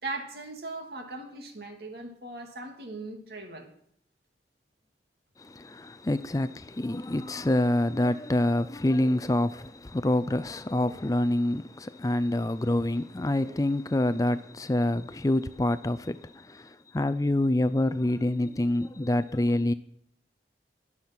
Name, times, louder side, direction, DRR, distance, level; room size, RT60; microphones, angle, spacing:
voice 1, 0.0-3.7, right 2 dB, 65° right, 2.5 m, -39 dB
voice 2, 5.4-19.7, left 1 dB, 20° left, 0.4 m, -27 dB
21.0 x 7.3 x 6.0 m
head